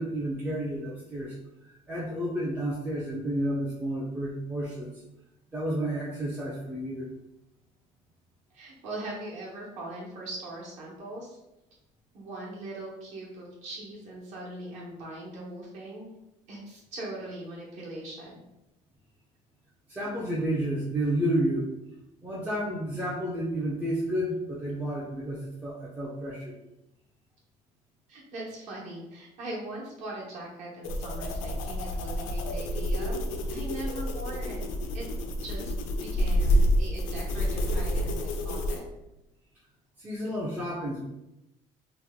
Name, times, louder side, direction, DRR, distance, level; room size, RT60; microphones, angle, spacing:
voice 1, 0.0-1.4 1.6-5.0 5.5-7.1 19.9-21.7 22.2-26.5 40.0-41.0, right 1 dB, 10° right, -5 dB, 0.4 m, -31 dB
voice 2, 8.5-11.4 12.1-16.1 16.5-18.4 28.1-33.2 33.5-34.7 34.9-35.1 35.4-35.7 36.0-38.8, right 1 dB, 60° right, -4 dB, 1.0 m, -40 dB
sound 1, 30.8-38.8, equal, 90° left, 0.5 m, -28 dB
2.9 x 2.1 x 3.5 m, 0.91 s
cardioid pair, 165°, 14 cm